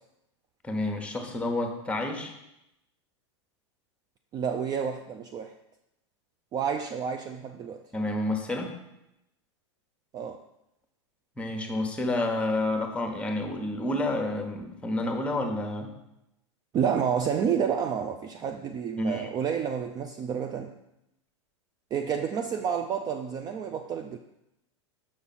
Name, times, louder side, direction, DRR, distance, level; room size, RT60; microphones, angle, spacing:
voice 1, 0.6-2.3 7.9-8.8 11.4-15.9 19.0-19.3, left 2 dB, 10° left, 4 dB, 1.1 m, -29 dB
voice 2, 4.3-5.5 6.5-7.8 10.1-10.4 16.7-20.7 21.9-24.2, right 7 dB, 25° right, 6 dB, 0.4 m, -29 dB
6.4 x 5.4 x 4.2 m, 0.87 s
hypercardioid pair, 105°, 15 cm